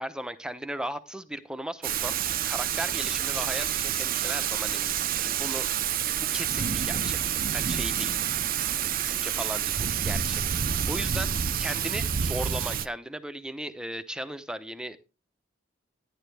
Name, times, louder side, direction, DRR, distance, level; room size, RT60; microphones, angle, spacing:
voice 1, 0.0-5.1 5.4-5.9 6.2-8.2 8.8-15.0, right 1 dB, 5° right, 11 dB, 0.8 m, -37 dB
Thunder / Rain, 1.8-12.9, right 9 dB, 50° right, 0.6 m, -28 dB
11.0 x 11.0 x 3.4 m, 0.30 s
head